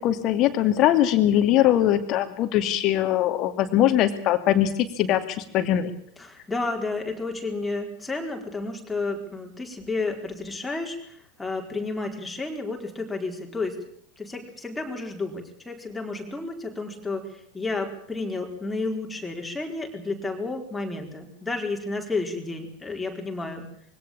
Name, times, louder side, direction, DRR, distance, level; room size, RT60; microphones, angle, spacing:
voice 1, 0.0-5.9, left 12 dB, 35° left, 10 dB, 2.5 m, -21 dB
voice 2, 6.2-13.8 14.2-17.3 17.5-23.6, left 3 dB, 10° left, 2 dB, 4.5 m, -31 dB
23.0 x 17.5 x 8.7 m, 0.65 s
figure-of-eight pair, 90°, 0 cm